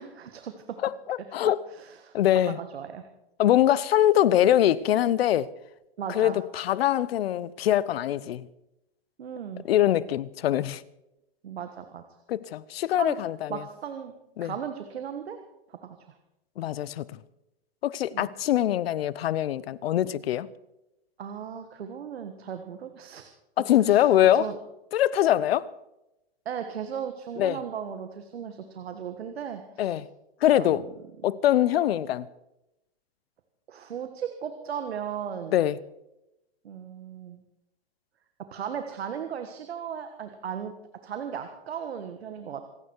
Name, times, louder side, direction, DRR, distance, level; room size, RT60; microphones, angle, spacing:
voice 1, 0.0-0.8 1.2-1.3 1.7-3.0 6.0-6.4 9.2-9.7 11.4-12.0 13.0-13.2 13.5-14.1 14.4-15.4 15.7-16.1 18.1-18.3 21.2-23.2 23.9-24.6 26.4-30.0 30.5-30.9 33.7-35.6 36.6-37.4 38.5-40.7 41.0-42.6, right 8 dB, 85° right, 1.7 m, -36 dB
voice 2, 0.8-1.6 2.1-2.6 3.4-5.5 6.1-8.5 9.7-10.8 12.3-13.6 14.4-14.5 16.6-17.0 17.8-20.5 23.6-24.5 24.9-25.7 27.4-27.6 29.8-30.1 30.4-30.8 31.2-32.3 35.5-35.8, left 12 dB, 75° left, 0.9 m, -23 dB
27.0 x 9.5 x 4.7 m
hypercardioid pair, 130°, 30 cm